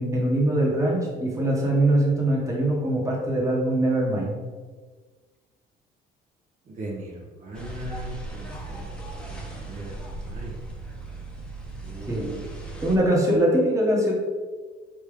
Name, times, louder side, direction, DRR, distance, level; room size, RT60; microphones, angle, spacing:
voice 1, 0.0-4.4 12.1-12.2 12.8-14.1, right 1 dB, 20° right, -3 dB, 1.2 m, -22 dB
voice 2, 6.8-7.1 7.4-9.0 9.7-10.0 10.2-10.6 11.8-12.4, right 2 dB, 50° right, -3 dB, 0.9 m, -38 dB
sound 1, 7.5-13.0, right 2 dB, 5° left, 0.8 m, -37 dB
4.4 x 3.3 x 3.4 m, 1.4 s
cardioid pair, 110°, 17 cm